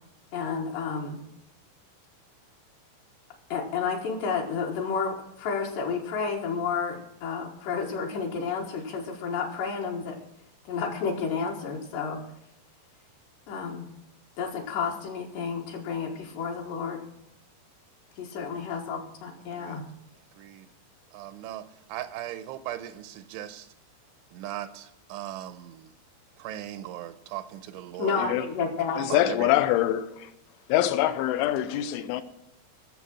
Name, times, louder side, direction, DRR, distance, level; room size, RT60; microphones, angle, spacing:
voice 1, 0.3-1.2 3.5-10.2 10.7-12.2 13.5-13.9 14.4-17.0 18.2-19.8 28.0-29.0, left 5 dB, 70° left, 3.4 m, -31 dB
voice 2, 19.5-19.9 20.4-20.7 21.1-23.7 24.3-25.9 26.4-28.3 29.1-29.5, right 13 dB, 80° right, 2.9 m, -38 dB
voice 3, 29.0-30.3 30.7-32.2, left 13 dB, 90° left, 3.3 m, -24 dB
16.5 x 7.3 x 6.1 m
omnidirectional pair, 5.6 m